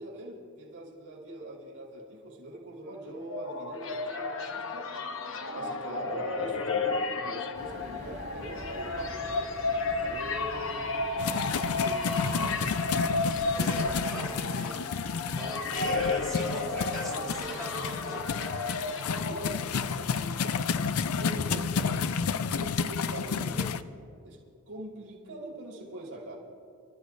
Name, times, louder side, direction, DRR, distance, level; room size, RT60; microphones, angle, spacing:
voice 1, 0.0-4.9 5.5-9.5 10.0-10.9 11.4-12.6 19.1-20.7 21.1-22.1 22.5-23.8 24.2-24.4 24.7-26.4, right 1 dB, 90° right, -4 dB, 4.2 m, -42 dB
sound 1, 3.0-20.0, left 3 dB, 60° left, 1.0 m, -33 dB
sound 2, 7.5-13.6, equal, 40° right, 3.1 m, -44 dB
sound 3, 11.2-23.8, left 5 dB, 85° left, 0.5 m, -31 dB
voice 2, 13.5-14.9 15.3-18.3, right 1 dB, ahead, -4 dB, 3.4 m, -40 dB
29.0 x 13.5 x 2.7 m, 2.5 s
head